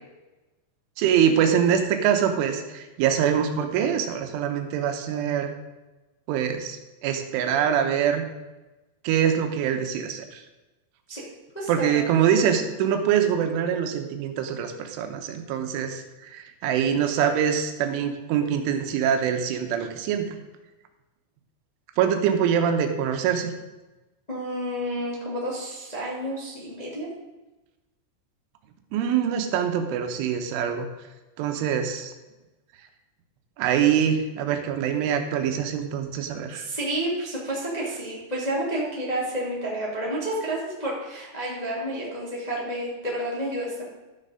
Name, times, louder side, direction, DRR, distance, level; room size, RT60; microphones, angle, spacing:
voice 1, 1.0-5.5 6.3-8.2 9.0-10.4 11.7-20.4 22.0-23.5 28.9-30.9 31.4-32.1 33.6-36.7, right 8 dB, 85° right, 6 dB, 3.5 m, -24 dB
voice 2, 11.5-12.0 24.3-27.1 36.5-43.8, right 1 dB, 15° left, -5 dB, 1.2 m, -30 dB
13.0 x 6.7 x 5.0 m, 1.1 s
omnidirectional pair, 5.5 m